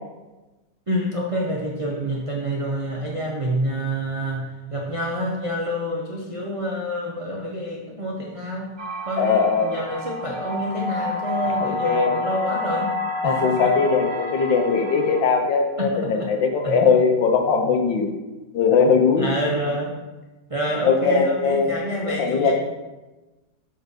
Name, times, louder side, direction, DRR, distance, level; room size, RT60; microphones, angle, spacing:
voice 1, 0.9-8.7 9.0-12.9 13.2-13.7 15.8-16.3 16.6-16.8 19.2-20.0 20.5-22.5, equal, 35° right, -2 dB, 0.5 m, -27 dB
sound 1, 8.8-15.2, left 2 dB, 85° right, 0.4 m, -29 dB
voice 2, 9.2-9.8 11.6-12.2 13.2-18.1 18.5-19.3 20.9-21.7 22.1-22.5, left 5 dB, 85° left, 3 dB, 1.6 m, -20 dB
6.6 x 4.6 x 5.3 m, 1.1 s
omnidirectional pair, 1.9 m